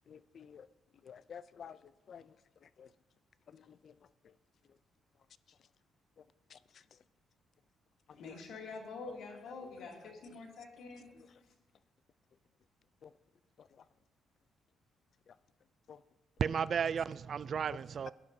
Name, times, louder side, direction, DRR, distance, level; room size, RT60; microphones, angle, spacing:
voice 1, 0.1-0.7 1.0-1.8 2.1-2.3 2.8-2.9 3.5-3.9 6.5-6.6 13.0-13.1 13.6-13.7 15.9-16.0, left 7 dB, 55° left, 0.4 m, -51 dB
voice 2, 8.1-11.1, left 4 dB, 75° left, 2.7 m, -46 dB
voice 3, 16.4-18.1, right 7 dB, 50° right, 0.3 m, -33 dB
18.0 x 10.5 x 2.8 m
cardioid pair, 90°, 0 cm